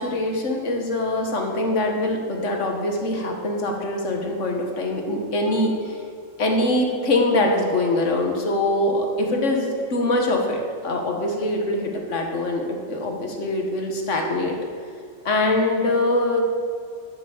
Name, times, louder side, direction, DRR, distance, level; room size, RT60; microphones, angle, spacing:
voice 1, 0.0-6.0 6.4-14.5 15.2-16.4, left 2 dB, 65° left, 2 dB, 1.8 m, -23 dB
10.0 x 7.1 x 7.3 m, 2.3 s
omnidirectional pair, 1.4 m